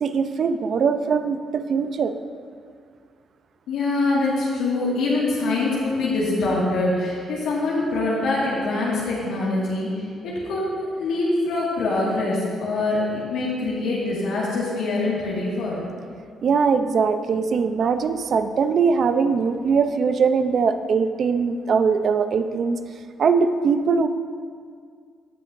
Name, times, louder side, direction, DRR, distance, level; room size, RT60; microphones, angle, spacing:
voice 1, 0.0-2.1 16.4-22.8 23.2-24.1, right 5 dB, 55° right, 9 dB, 0.5 m, -21 dB
voice 2, 3.7-10.7 11.0-15.8, left 2 dB, 90° left, -7 dB, 1.9 m, -24 dB
16.0 x 5.8 x 2.6 m, 2.1 s
cardioid pair, 90°, 0 cm